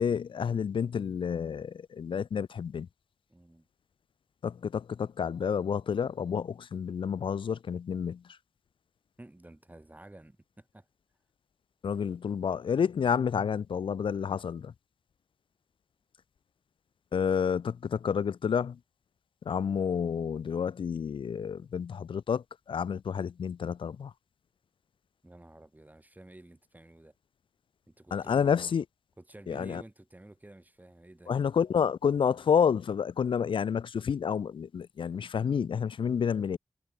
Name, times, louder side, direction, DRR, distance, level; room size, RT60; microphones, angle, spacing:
voice 1, 0.0-2.9 4.4-8.2 11.8-14.7 17.1-18.8 19.5-24.1 28.1-28.8 29.5-29.8 31.3-36.6, left 7 dB, 90° left, 0.4 m, -29 dB
voice 2, 3.3-3.7 9.2-10.9 25.2-27.1 27.9-28.7 29.2-31.3, right 1 dB, 20° right, 5.5 m, -51 dB
wide cardioid pair, 80°, 8 cm